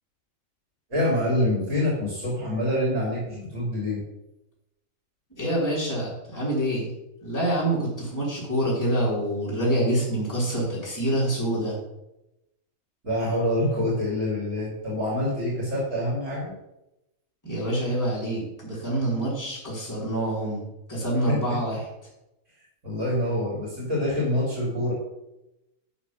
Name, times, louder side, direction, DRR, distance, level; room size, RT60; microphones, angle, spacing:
voice 1, 0.9-4.0 13.0-16.5 21.3-21.6 22.8-24.9, left 1 dB, 65° right, -7 dB, 3.6 m, -26 dB
voice 2, 5.4-6.9 7.2-11.8 17.4-20.6 20.9-21.9, right 1 dB, 15° left, -7 dB, 3.3 m, -26 dB
11.5 x 4.2 x 7.2 m, 0.92 s
omnidirectional pair, 1.4 m